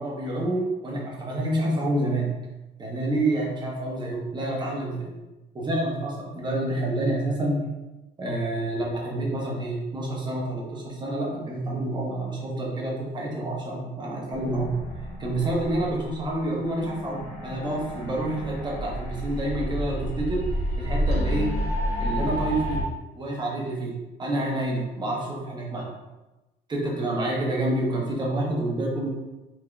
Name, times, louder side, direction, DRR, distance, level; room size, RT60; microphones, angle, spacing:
voice 1, 0.0-2.3 2.8-5.2 5.5-7.6 8.2-14.7 15.2-20.4 20.8-21.5 22.0-22.8 23.1-23.9 24.2-25.9 26.7-29.1, right 1 dB, 25° right, -3 dB, 1.0 m, -28 dB
sound 1, 14.3-22.8, equal, 80° left, 0.8 m, -30 dB
3.6 x 2.9 x 2.3 m, 1.0 s
cardioid pair, 110°, 17 cm